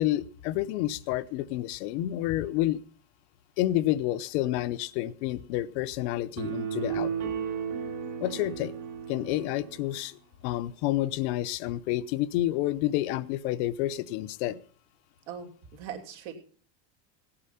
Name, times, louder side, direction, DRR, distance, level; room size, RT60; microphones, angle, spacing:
voice 1, 0.0-2.8 3.6-7.3 8.2-8.7 9.1-14.6, left 15 dB, 65° left, 15 dB, 0.8 m, -29 dB
sound 1, 6.4-9.9, right 7 dB, 50° right, 3.0 m, -34 dB
voice 2, 15.3-16.4, right 8 dB, 70° right, 2 dB, 3.1 m, -40 dB
17.0 x 8.8 x 5.7 m, 0.43 s
cardioid pair, 165°, 37 cm